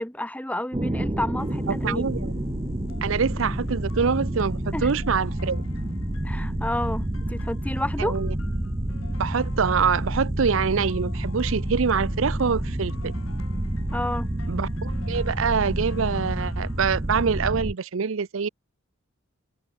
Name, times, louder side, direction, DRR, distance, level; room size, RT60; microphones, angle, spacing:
voice 1, 0.0-2.1 4.7-4.9 6.2-8.2 13.9-14.3, left 1 dB, 5° left, 3.1 m, -30 dB
sound 1, 0.7-17.7, right 1 dB, 25° right, 1.0 m, -29 dB
sound 2, 1.4-17.4, left 1 dB, 85° left, 2.8 m, -40 dB
voice 2, 1.7-2.3 3.0-5.6 8.0-8.3 9.2-13.1 14.5-18.5, right 6 dB, 70° right, 0.6 m, -25 dB
open air
head